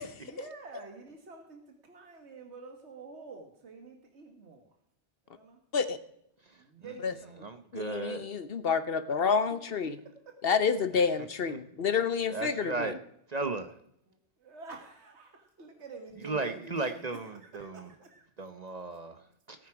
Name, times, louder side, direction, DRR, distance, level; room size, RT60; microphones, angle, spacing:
voice 1, 0.2-4.7 5.3-5.6 6.6-7.6 10.0-10.3 11.4-11.5 14.1-18.3, right 3 dB, 75° right, 3 dB, 1.9 m, -48 dB
voice 2, 6.4-6.9 7.4-8.3 11.5-11.6 12.3-13.0 13.3-13.8 16.2-17.9 18.4-19.7, right 3 dB, 40° right, 8 dB, 0.9 m, -36 dB
voice 3, 7.7-10.0 10.4-13.0, left 6 dB, 60° left, 12 dB, 1.1 m, -29 dB
17.5 x 9.3 x 4.8 m, 0.75 s
omnidirectional pair, 1.2 m